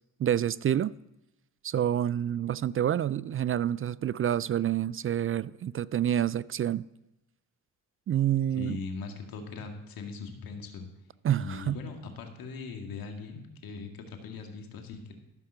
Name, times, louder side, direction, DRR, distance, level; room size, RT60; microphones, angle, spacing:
voice 1, 0.2-0.9 1.6-6.8 8.1-8.8 11.2-11.8, right 10 dB, 40° right, 0.4 m, -28 dB
voice 2, 8.6-10.9 11.4-15.2, left 4 dB, 80° left, 1.9 m, -40 dB
13.5 x 5.6 x 6.7 m
supercardioid pair, 60°, 35 cm